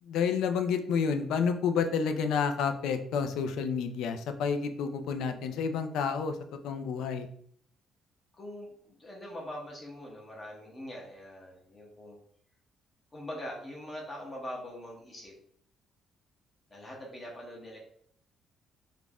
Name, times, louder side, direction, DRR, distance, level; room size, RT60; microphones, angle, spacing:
voice 1, 0.0-6.4 6.6-7.3, left 6 dB, 75° left, 8 dB, 0.3 m, -29 dB
voice 2, 8.4-12.2 13.1-15.3 16.7-17.8, left 1 dB, 20° left, -2 dB, 0.6 m, -43 dB
2.4 x 2.1 x 3.3 m, 0.64 s
cardioid pair, 170°, 0 cm